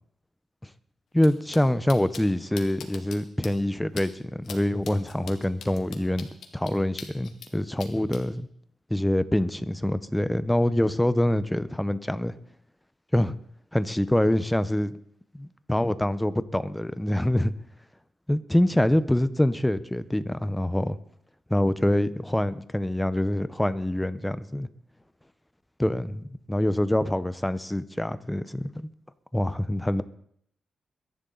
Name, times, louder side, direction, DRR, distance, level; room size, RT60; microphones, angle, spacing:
voice 1, 1.1-6.3 6.5-8.5 8.9-12.4 13.1-13.4 13.7-15.0 15.3-17.5 18.3-21.0 21.5-24.7 25.8-26.2 26.5-28.9 29.3-30.0, left 1 dB, 5° left, 0.7 m, -25 dB
sound 1, 1.2-1.3 1.5-1.6 1.9-2.2 2.6-3.2 3.4-3.5 4.0-4.1 4.4-4.6 4.8-7.5 7.8-8.2, left 7 dB, 75° left, 1.9 m, -41 dB
22.5 x 11.0 x 3.9 m
cardioid pair, 110°, 0 cm